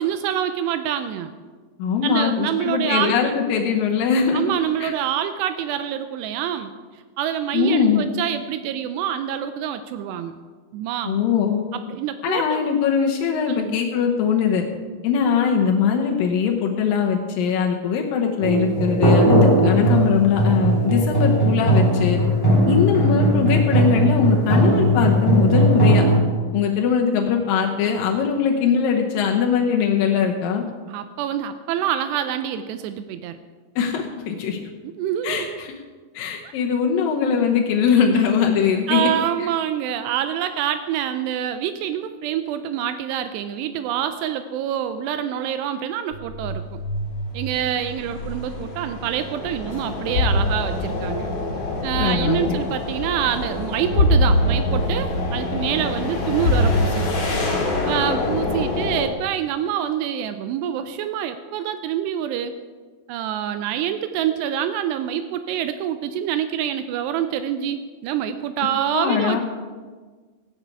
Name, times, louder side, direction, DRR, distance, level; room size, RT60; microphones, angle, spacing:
voice 1, 0.0-1.3 2.0-3.4 4.3-6.7 7.2-10.3 10.7-11.1 11.7-12.6 13.5-13.8 30.9-33.4 34.8-35.6 36.4-36.5 38.9-46.8 47.3-51.3 51.8-57.3 57.9-62.5 63.1-69.4, right 10 dB, 85° right, 10 dB, 2.4 m, -26 dB
voice 2, 1.8-4.4 4.8-4.9 7.5-8.0 11.0-11.6 12.2-14.6 15.0-22.2 22.7-26.0 26.5-30.6 33.8-34.6 35.2-35.7 36.1-39.1 39.4-39.5 52.0-52.6 68.9-69.4, left 7 dB, 90° left, 1 dB, 2.0 m, -21 dB
sound 1, 18.4-26.2, right 1 dB, 10° left, 1.4 m, -18 dB
sound 2, 46.1-59.1, left 1 dB, 40° left, 3.4 m, -24 dB
15.5 x 9.9 x 4.6 m, 1.4 s
omnidirectional pair, 5.5 m